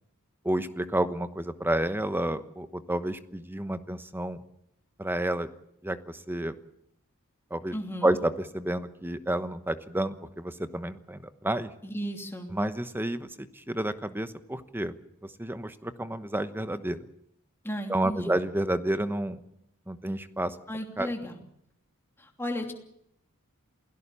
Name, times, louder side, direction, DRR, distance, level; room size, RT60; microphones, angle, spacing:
voice 1, 0.4-4.4 5.0-5.5 5.8-6.6 7.5-7.7 8.0-11.7 12.5-14.9 15.2-17.0 17.9-19.4 19.9-20.6 21.0-21.1, right 1 dB, 10° right, 11 dB, 1.1 m, -30 dB
voice 2, 7.7-8.2 11.8-12.5 17.6-18.4 20.7-21.4 22.2-22.7, equal, 10° left, 3 dB, 2.9 m, -34 dB
28.0 x 17.5 x 7.0 m, 0.77 s
head